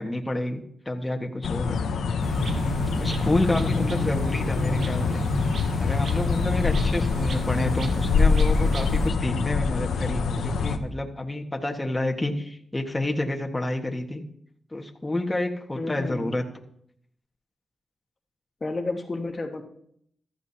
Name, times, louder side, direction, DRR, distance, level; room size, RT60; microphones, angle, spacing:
voice 1, 0.0-1.8 3.0-14.2 14.7-16.4, left 1 dB, 20° left, 2 dB, 1.6 m, -29 dB
sound 1, 1.4-10.8, left 5 dB, 90° left, 0.9 m, -25 dB
sound 2, 2.2-9.1, right 2 dB, 65° right, 1.2 m, -32 dB
voice 2, 3.5-4.2 15.7-16.3 18.6-19.6, left 2 dB, 40° left, 3 dB, 1.6 m, -32 dB
15.0 x 13.0 x 2.9 m, 0.69 s
cardioid pair, 55°, 0 cm